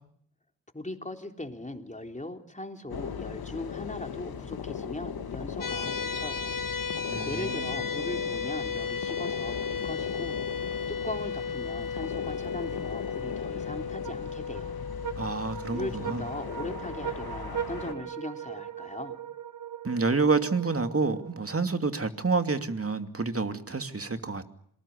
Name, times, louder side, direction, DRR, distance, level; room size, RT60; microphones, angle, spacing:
voice 1, 0.7-6.5 6.9-14.8 15.7-19.2, left 1 dB, 20° left, 5 dB, 3.7 m, -39 dB
sound 1, 2.9-17.9, left 7 dB, 85° left, 1.8 m, -38 dB
sound 2, 5.6-16.8, left 5 dB, 60° left, 1.1 m, -35 dB
voice 2, 7.1-7.7 15.2-16.2 19.8-24.5, right 4 dB, 40° right, 8 dB, 2.7 m, -28 dB
sound 3, 14.0-21.6, right 9 dB, 60° right, 1.1 m, -39 dB
26.5 x 20.0 x 8.5 m, 0.68 s
cardioid pair, 40°, 36 cm